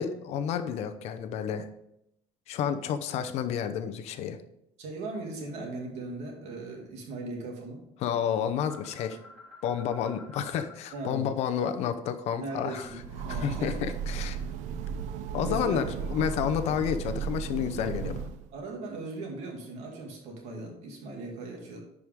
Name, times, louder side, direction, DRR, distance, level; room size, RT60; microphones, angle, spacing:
voice 1, 0.0-1.7 2.5-4.4 8.0-9.2 9.6-12.9 13.3-14.4 15.3-18.2, left 8 dB, 65° left, 9 dB, 0.7 m, -30 dB
voice 2, 4.8-7.8 10.9-11.3 12.4-13.8 15.4-16.1 17.9-18.1 18.5-21.8, right 2 dB, 65° right, 1 dB, 2.3 m, -38 dB
sound 1, 8.4-11.0 11.3-13.6, left 3 dB, 5° left, 2.0 m, -52 dB
Train, 12.8-18.6, right 7 dB, 80° right, 0.6 m, -35 dB
10.5 x 5.0 x 3.6 m, 0.79 s
cardioid pair, 170°, 12 cm